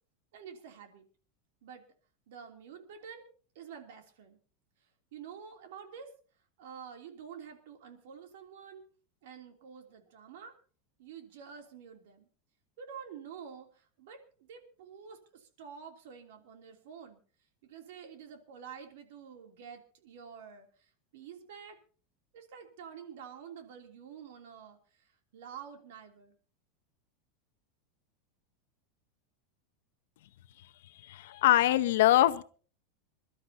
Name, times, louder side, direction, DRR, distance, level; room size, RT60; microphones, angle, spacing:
voice 1, 0.3-1.1 1.6-1.8 2.3-3.3 3.5-4.4 5.1-6.1 6.6-8.8 9.2-10.5 11.0-12.3 12.8-17.2 17.6-21.8 22.3-26.3, right 7 dB, 60° right, 4 dB, 3.1 m, -48 dB
voice 2, 31.0-32.4, left 14 dB, 65° left, 13 dB, 0.8 m, -23 dB
27.0 x 12.0 x 2.9 m, 0.40 s
supercardioid pair, 180°, 0 cm